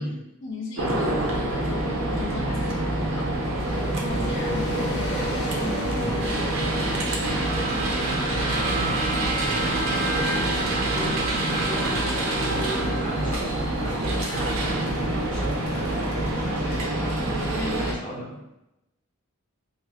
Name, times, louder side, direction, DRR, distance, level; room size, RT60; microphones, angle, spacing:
voice 1, 0.4-8.1 14.3-14.5 17.6-18.0, left 2 dB, 60° left, -3 dB, 0.7 m, -38 dB
sound 1, 0.8-17.9, right 1 dB, 75° right, 0.7 m, -26 dB
sound 2, 3.6-16.9, left 1 dB, 90° left, 1.0 m, -36 dB
Bowed string instrument, 7.4-13.8, right 3 dB, 35° right, 0.4 m, -34 dB
voice 2, 9.3-17.4 17.7-18.5, equal, 20° left, -5 dB, 0.7 m, -39 dB
5.2 x 2.1 x 2.4 m, 0.87 s
head